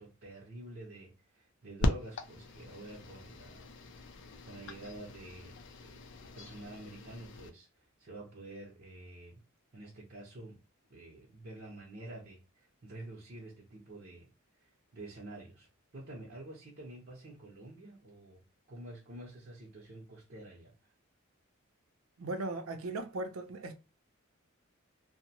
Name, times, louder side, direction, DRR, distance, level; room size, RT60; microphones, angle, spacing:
voice 1, 0.0-3.6 3.9-4.1 4.4-9.4 9.7-10.6 10.9-14.3 14.6-18.4 18.7-20.9, right 1 dB, 45° right, 0.7 m, -49 dB
sound 1, 1.8-7.5, left 1 dB, 60° left, 0.4 m, -39 dB
voice 2, 22.2-23.7, right 2 dB, 80° right, 0.6 m, -37 dB
2.7 x 2.0 x 2.7 m
head